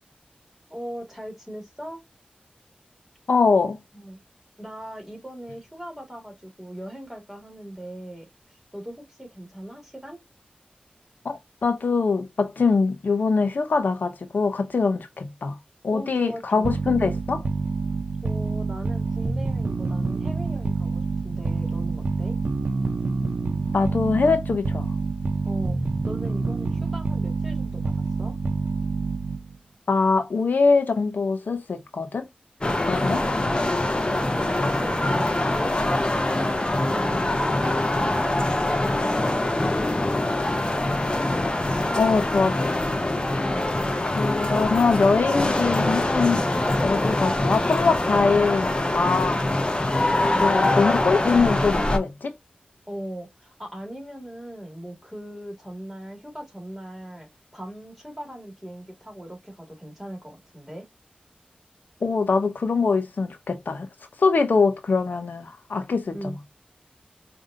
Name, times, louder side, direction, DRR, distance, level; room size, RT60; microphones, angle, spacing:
voice 1, 0.7-2.0 3.9-4.2 4.6-10.2 15.9-16.8 18.2-22.3 25.5-25.8 26.0-28.3 33.0-37.8 38.2-41.2 43.4-43.8 50.1-50.6 52.9-60.9 66.1-66.4, equal, 5° right, 2.2 m, -39 dB
voice 2, 3.3-3.8 11.2-15.6 15.8-17.5 23.7-25.0 29.9-32.3 32.9-33.2 42.0-42.9 44.1-46.4 46.8-49.5 50.2-52.3 62.0-63.9 64.2-66.3, left 4 dB, 80° left, 0.7 m, -23 dB
sound 1, 16.6-29.6, right 4 dB, 70° right, 0.6 m, -27 dB
sound 2, 32.6-52.0, left 1 dB, 35° left, 0.7 m, -24 dB
5.0 x 2.6 x 2.6 m
wide cardioid pair, 75°, 3 cm